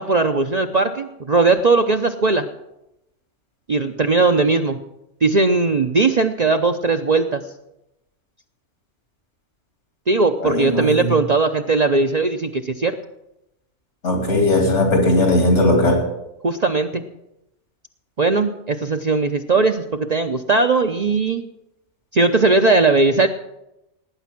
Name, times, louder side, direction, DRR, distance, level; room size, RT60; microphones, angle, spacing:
voice 1, 0.0-2.5 3.7-4.8 5.2-7.4 10.1-12.9 16.4-17.0 18.2-21.4 22.1-23.3, right 3 dB, 40° right, 5 dB, 0.7 m, -18 dB
voice 2, 10.4-11.1 14.0-16.0, left 1 dB, 80° left, 2 dB, 3.3 m, -18 dB
18.0 x 9.4 x 6.0 m, 0.88 s
omnidirectional pair, 1.2 m